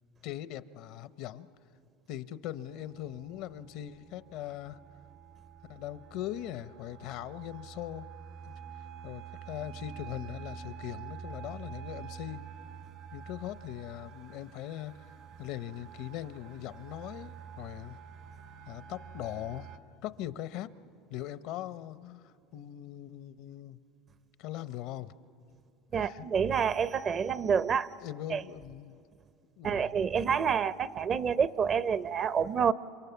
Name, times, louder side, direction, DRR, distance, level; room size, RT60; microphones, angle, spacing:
voice 1, 0.2-1.5 2.1-4.8 5.7-8.1 8.4-8.5 9.0-12.4 13.1-15.1 15.4-18.0 18.7-20.7 21.1-23.8 24.4-25.1 26.0-26.3 28.0-29.0 29.6-29.9, left 12 dB, 70° left, 14 dB, 0.7 m, -40 dB
sound 1, 2.6-19.8, right 7 dB, 60° right, 1.6 m, -47 dB
voice 2, 25.9-27.9 28.3-28.4 29.6-32.7, right 7 dB, 40° right, 15 dB, 0.6 m, -28 dB
29.5 x 27.0 x 7.0 m, 2.5 s
supercardioid pair, 105°, 0 cm